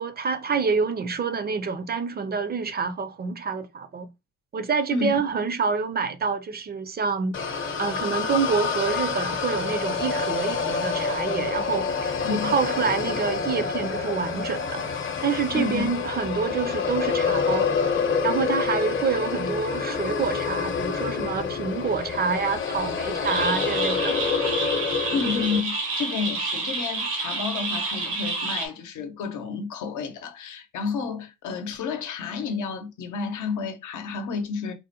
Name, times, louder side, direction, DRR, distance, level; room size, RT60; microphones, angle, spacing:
voice 1, 0.0-4.1 4.5-7.3 7.8-14.8 15.2-17.7 18.2-24.2, right 5 dB, 35° right, 0.4 m, -27 dB
sound 1, 7.3-25.6, left 5 dB, 40° left, 0.7 m, -27 dB
voice 2, 12.2-12.5 15.5-15.9 25.1-34.7, left 5 dB, 75° left, 0.8 m, -30 dB
sound 2, 23.2-28.7, right 3 dB, 90° right, 1.0 m, -29 dB
3.6 x 2.2 x 2.8 m
cardioid pair, 90°, 30 cm